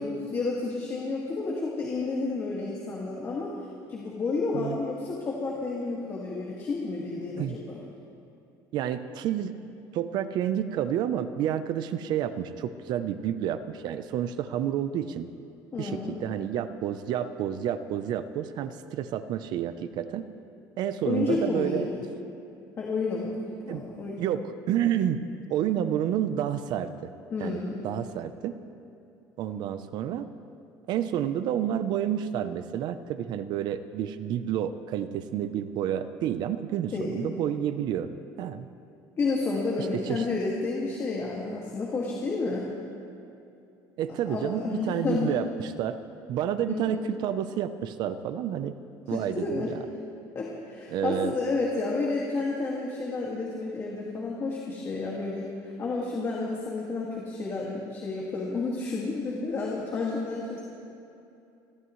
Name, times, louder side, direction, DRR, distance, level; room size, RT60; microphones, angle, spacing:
voice 1, 0.0-3.5 3.9-7.8 15.7-16.2 21.0-22.0 22.8-24.2 27.3-27.9 36.9-37.4 39.2-42.7 44.3-45.3 46.7-47.0 49.1-49.8 50.3-60.6, left 3 dB, 35° left, -4 dB, 2.1 m, -31 dB
voice 2, 8.7-9.5 9.9-15.3 15.8-20.3 20.8-21.9 23.7-23.8 24.2-25.2 25.5-27.1 27.4-28.6 29.4-30.3 30.9-38.1 38.4-38.7 39.8-40.2 44.0-46.0 46.3-48.7 49.1-49.7 50.9-51.3, right 10 dB, 60° right, 11 dB, 0.7 m, -30 dB
28.5 x 14.0 x 3.2 m, 2.7 s
cardioid pair, 135°, 8 cm